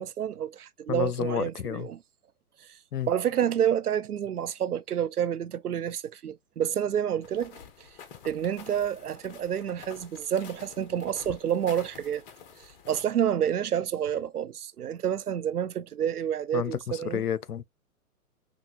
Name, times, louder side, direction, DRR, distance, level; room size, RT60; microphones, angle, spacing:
voice 1, 0.0-2.0 2.6-2.8 3.1-7.9 8.2-12.2 12.6-17.2, right 9 dB, 85° right, 0.6 m, -29 dB
voice 2, 0.9-1.9 2.9-3.1 16.5-17.6, left 8 dB, 85° left, 0.6 m, -30 dB
sound 1, 7.2-13.1, left 7 dB, 35° left, 1.1 m, -48 dB
6.0 x 2.4 x 2.5 m
figure-of-eight pair, 120°, 45 cm